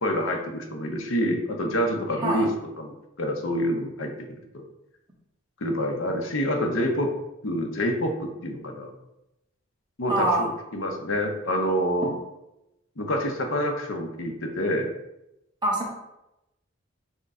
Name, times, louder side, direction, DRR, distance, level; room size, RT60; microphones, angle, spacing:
voice 1, 0.0-2.5 2.8-4.6 5.6-7.1 7.4-8.9 10.0-12.1 13.0-14.9, equal, 75° left, 2 dB, 0.7 m, -27 dB
voice 2, 10.1-10.5 15.6-15.9, right 1 dB, 20° right, -3 dB, 1.0 m, -24 dB
6.3 x 2.2 x 3.6 m, 0.90 s
head